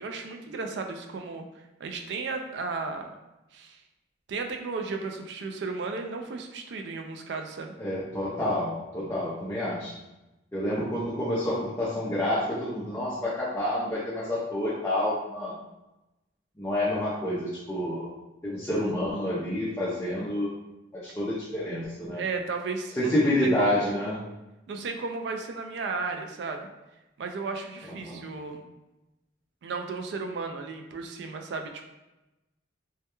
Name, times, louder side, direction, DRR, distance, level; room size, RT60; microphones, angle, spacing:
voice 1, 0.0-1.5 1.8-3.1 3.5-3.8 4.3-7.7 22.1-24.0 24.7-26.7 27.2-28.6 29.6-31.9, right 4 dB, 65° right, 5 dB, 0.3 m, -34 dB
voice 2, 7.8-9.9 10.5-15.5 16.6-18.1 18.4-20.5 21.0-22.2 23.0-24.2 28.0-28.2, left 1 dB, 15° left, -9 dB, 0.4 m, -28 dB
2.2 x 2.2 x 2.9 m, 0.99 s
head